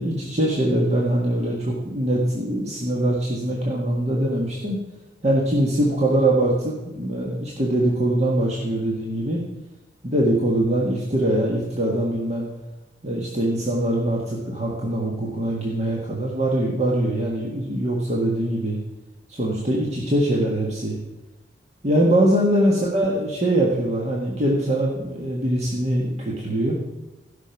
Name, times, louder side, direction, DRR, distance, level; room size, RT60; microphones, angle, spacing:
voice 1, 0.0-4.8 5.2-9.4 10.0-12.5 13.0-18.8 19.3-21.0 21.8-26.8, right 1 dB, 40° right, -3 dB, 1.6 m, -22 dB
15.0 x 6.1 x 5.9 m, 1.0 s
head